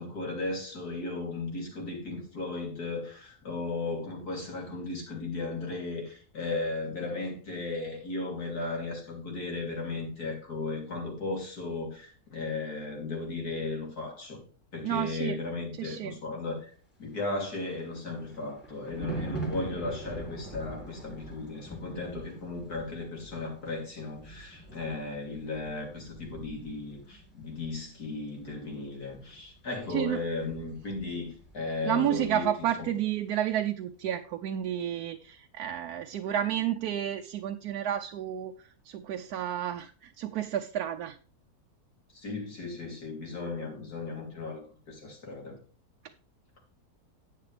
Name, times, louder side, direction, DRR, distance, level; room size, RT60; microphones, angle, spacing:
voice 1, 0.0-14.4 14.7-16.7 17.0-32.5 32.8-32.9 42.1-45.6, left 3 dB, 80° left, 0 dB, 3.7 m, -36 dB
voice 2, 14.8-15.4 15.8-16.2 29.9-30.2 31.8-41.2, right 11 dB, 80° right, 6 dB, 1.2 m, -31 dB
Thunder, 17.2-31.7 32.0-32.3, right 2 dB, 10° left, 3.3 m, -43 dB
11.0 x 8.8 x 3.4 m, 0.39 s
omnidirectional pair, 1.6 m